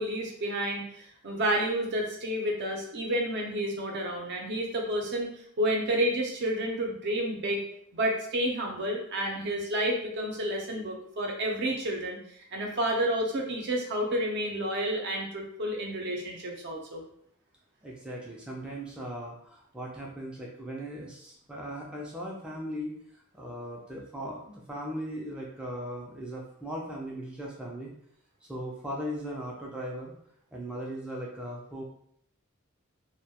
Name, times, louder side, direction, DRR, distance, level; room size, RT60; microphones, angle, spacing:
voice 1, 0.0-5.3 5.6-7.6 7.9-17.0, right 1 dB, 55° right, 0 dB, 0.6 m, -30 dB
voice 2, 17.8-23.0 23.3-27.9 28.4-30.1 30.5-31.8, equal, 5° right, -3 dB, 0.3 m, -38 dB
2.2 x 2.1 x 2.7 m, 0.67 s
head